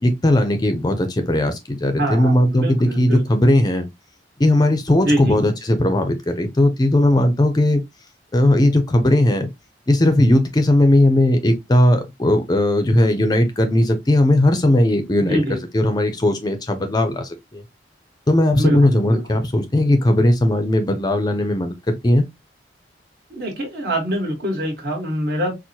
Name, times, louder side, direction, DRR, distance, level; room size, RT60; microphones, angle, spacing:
voice 1, 0.0-3.9 4.4-7.8 8.3-9.5 9.9-15.4 15.7-17.6 18.3-22.3, left 1 dB, 20° left, 0.4 m, -17 dB
voice 2, 1.9-3.2 5.0-5.3 15.3-15.6 18.6-19.4 23.3-25.5, equal, 55° right, 1.5 m, -24 dB
4.4 x 2.1 x 2.7 m
head